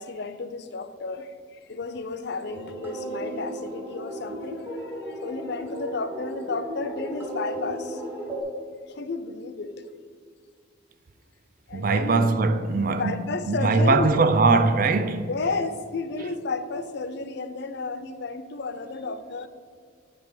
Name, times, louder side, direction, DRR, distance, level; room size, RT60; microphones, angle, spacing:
voice 1, 0.0-8.0 8.9-9.9 11.7-12.3 12.9-14.2 15.2-19.5, left 3 dB, 60° left, 0.5 m, -32 dB
sound 1, 2.4-8.4, right 1 dB, 10° right, 1.2 m, -35 dB
voice 2, 11.7-15.3, right 3 dB, 45° right, 0.4 m, -21 dB
9.1 x 3.6 x 5.9 m
head